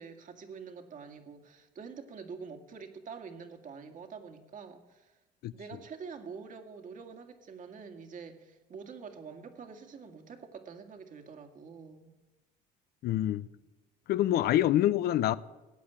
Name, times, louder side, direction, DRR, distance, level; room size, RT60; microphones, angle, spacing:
voice 1, 0.0-5.2 5.5-12.2, right 5 dB, 50° right, 2.1 m, -46 dB
voice 2, 13.0-13.5 14.1-15.4, left 13 dB, 70° left, 0.6 m, -26 dB
16.0 x 8.7 x 9.0 m
cardioid pair, 110°, 17 cm